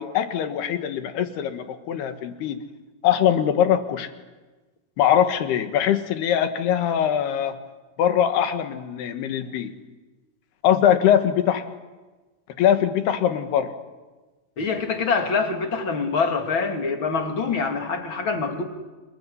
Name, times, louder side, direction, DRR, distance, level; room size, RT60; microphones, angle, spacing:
voice 1, 0.0-2.6 3.0-4.1 5.0-7.6 8.0-9.7 10.6-11.6 12.6-13.7, left 9 dB, 75° left, 8 dB, 3.5 m, -22 dB
voice 2, 14.6-18.6, left 4 dB, 35° left, 5 dB, 2.4 m, -25 dB
27.0 x 21.5 x 9.6 m, 1.2 s
omnidirectional pair, 4.8 m